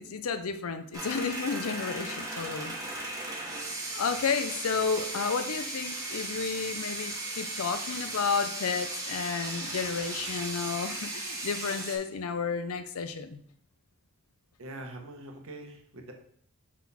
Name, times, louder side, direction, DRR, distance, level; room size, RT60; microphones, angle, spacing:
voice 1, 0.0-2.8 3.9-13.4, left 5 dB, 70° left, 10 dB, 0.5 m, -32 dB
sound 1, 0.9-12.0, right 2 dB, 15° right, 1.4 m, -36 dB
voice 2, 14.6-16.1, right 1 dB, 65° right, 3 dB, 1.1 m, -43 dB
6.1 x 4.0 x 4.2 m, 0.64 s
head